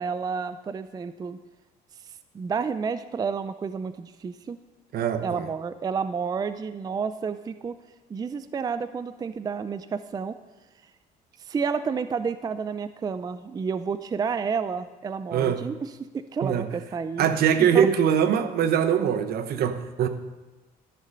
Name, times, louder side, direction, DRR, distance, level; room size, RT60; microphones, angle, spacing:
voice 1, 0.0-1.4 2.3-4.6 5.2-7.8 8.1-10.4 11.4-17.3 17.6-17.9, right 5 dB, 25° right, 12 dB, 0.4 m, -30 dB
voice 2, 4.9-5.4 15.3-15.6 16.4-16.6 17.2-20.1, right 8 dB, 65° right, 10 dB, 0.9 m, -22 dB
13.5 x 6.6 x 5.4 m, 1.2 s
cardioid pair, 110°, 17 cm